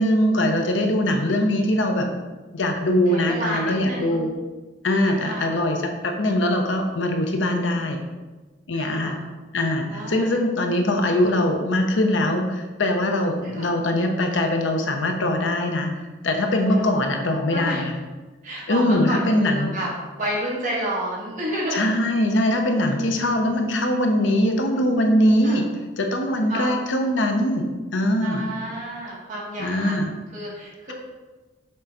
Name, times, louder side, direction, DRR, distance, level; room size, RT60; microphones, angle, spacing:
voice 1, 0.0-2.1 2.5-4.3 4.8-8.0 8.7-9.2 9.5-15.9 16.2-17.9 18.7-19.7 21.7-25.6 26.0-27.7 27.9-28.5 29.6-30.1, left 1 dB, 70° left, 4 dB, 0.7 m, -22 dB
voice 2, 3.1-4.3 5.0-5.5 8.7-9.2 9.9-10.4 13.4-13.8 16.6-16.8 17.5-17.8 18.4-22.0 23.2-23.4 25.4-25.6 26.5-26.8 28.2-29.9 30.3-30.9, right 1 dB, 40° right, -6 dB, 1.9 m, -31 dB
6.6 x 3.8 x 4.1 m, 1.2 s
head